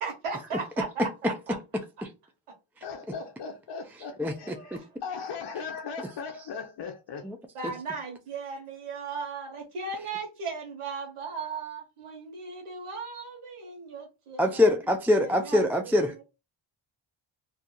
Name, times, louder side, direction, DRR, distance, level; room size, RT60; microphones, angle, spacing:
voice 1, 0.0-1.6 4.2-5.0 7.5-14.7 15.1-16.2, right 4 dB, 85° right, 1.1 m, -37 dB
voice 2, 2.8-7.3, left 5 dB, 55° left, 0.7 m, -38 dB
voice 3, 4.2-4.8 7.2-7.4 14.4-16.2, left 1 dB, 5° right, 0.3 m, -24 dB
2.7 x 2.3 x 3.7 m
cardioid pair, 70°, 49 cm